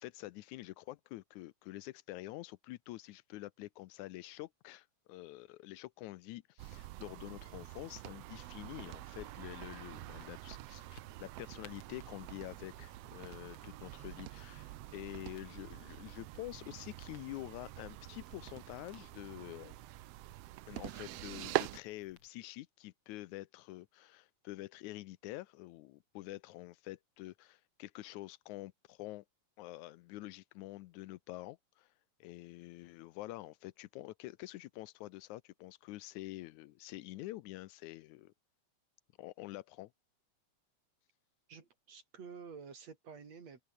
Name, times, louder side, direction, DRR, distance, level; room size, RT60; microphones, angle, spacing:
voice 1, 0.0-10.8 11.2-19.8 20.7-29.3 29.6-31.9 32.2-38.3 39.2-39.9, left 17 dB, 80° left, 2.1 m, -47 dB
sound 1, 6.6-21.8, right 17 dB, 80° right, 1.5 m, -45 dB
sound 2, 9.2-22.3, left 5 dB, 50° left, 4.2 m, -64 dB
voice 2, 41.5-43.6, right 5 dB, 60° right, 4.5 m, -50 dB
omnidirectional pair, 3.4 m